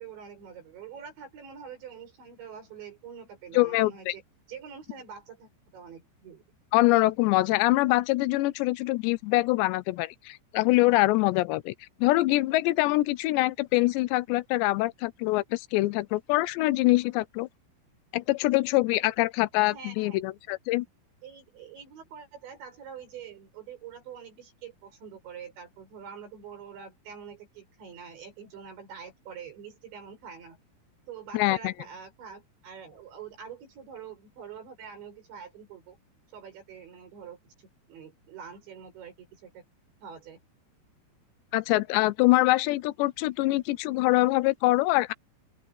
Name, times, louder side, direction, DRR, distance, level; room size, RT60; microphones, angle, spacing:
voice 1, 0.0-4.2 4.5-6.4 19.7-20.3 21.2-30.6 31.1-36.0 36.3-39.6 40.0-40.4, right 7 dB, 85° right, 9.0 m, -45 dB
voice 2, 3.5-4.1 6.7-11.7 12.0-17.5 18.1-20.9 31.3-31.7 41.5-45.1, left 20 dB, 85° left, 2.8 m, -24 dB
open air
omnidirectional pair, 5.0 m